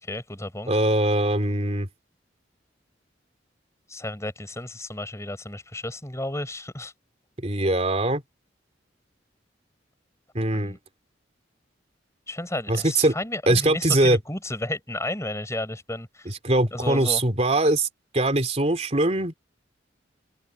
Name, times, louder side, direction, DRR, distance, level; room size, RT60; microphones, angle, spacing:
voice 1, 0.0-0.7 3.9-6.9 10.5-10.8 12.3-16.3 16.7-17.2, left 1 dB, 15° left, 5.3 m, -33 dB
voice 2, 0.7-1.9 7.4-8.2 10.3-10.8 12.7-13.1 13.5-14.2 16.2-17.9 18.1-19.3, right 2 dB, 35° right, 3.3 m, -22 dB
head